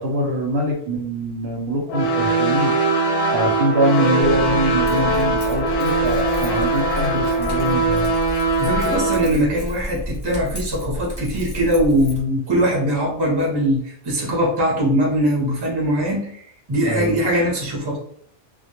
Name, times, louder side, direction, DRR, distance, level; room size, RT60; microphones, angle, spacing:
voice 1, 0.0-2.7 3.3-8.1 16.9-17.1, right 1 dB, 65° right, 0 dB, 0.8 m, -23 dB
sound 1, 1.9-9.2, right 2 dB, 65° left, 0.7 m, -21 dB
Keys jangling, 4.2-12.2, equal, 20° left, 0.8 m, -31 dB
voice 2, 8.6-16.3 16.7-18.0, equal, 25° right, -3 dB, 0.6 m, -21 dB
2.1 x 2.1 x 2.8 m, 0.62 s
omnidirectional pair, 1.2 m